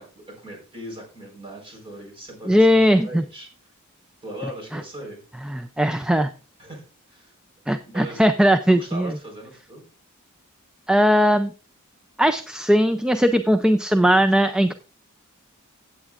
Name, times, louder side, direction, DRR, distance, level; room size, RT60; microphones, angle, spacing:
voice 1, 0.0-3.5 4.2-5.2 6.6-7.3 7.9-8.2 8.6-9.8, right 1 dB, 25° right, 0 dB, 4.5 m, -39 dB
voice 2, 2.5-3.2 4.7-4.8 5.5-6.3 7.7-9.1 10.9-11.5 12.2-14.7, equal, 5° right, 8 dB, 0.4 m, -19 dB
15.5 x 8.8 x 2.5 m, 0.35 s
head